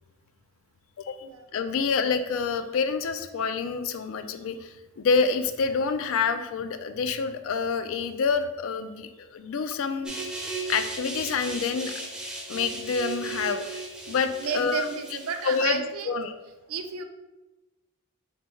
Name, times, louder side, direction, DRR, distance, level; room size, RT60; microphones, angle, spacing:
voice 1, 1.5-10.1 10.7-11.9 12.5-13.6 14.1-14.9 15.4-16.3, left 5 dB, 60° left, 10 dB, 0.3 m, -27 dB
sound 1, 10.0-15.6, right 3 dB, 5° right, 0.5 m, -36 dB
voice 2, 14.4-16.2 16.7-17.0, right 6 dB, 70° right, 6 dB, 0.4 m, -32 dB
4.2 x 3.3 x 3.1 m, 1.1 s
head